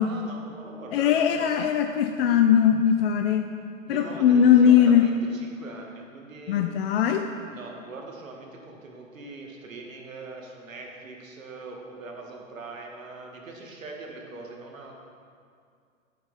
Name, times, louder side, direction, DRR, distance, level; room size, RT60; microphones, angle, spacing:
voice 1, 0.0-1.6 3.9-6.7 7.5-15.0, right 3 dB, 75° right, 1 dB, 1.7 m, -41 dB
voice 2, 0.9-3.5 3.9-5.1 6.5-7.2, left 9 dB, 45° left, 6 dB, 0.5 m, -20 dB
8.8 x 8.4 x 4.0 m, 2.2 s
figure-of-eight pair, 110°, 40 cm